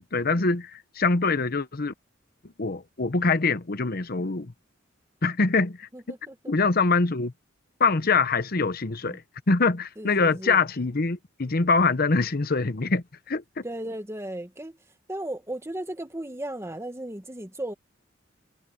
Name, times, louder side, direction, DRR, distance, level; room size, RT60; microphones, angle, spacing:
voice 1, 0.0-1.9 2.6-4.5 5.2-5.9 6.5-7.3 7.8-9.2 9.5-13.6, left 4 dB, 50° left, 0.9 m, -24 dB
voice 2, 5.9-6.5 9.0-9.2 10.0-10.6 13.6-14.8 15.1-17.7, right 1 dB, 15° right, 1.6 m, -35 dB
head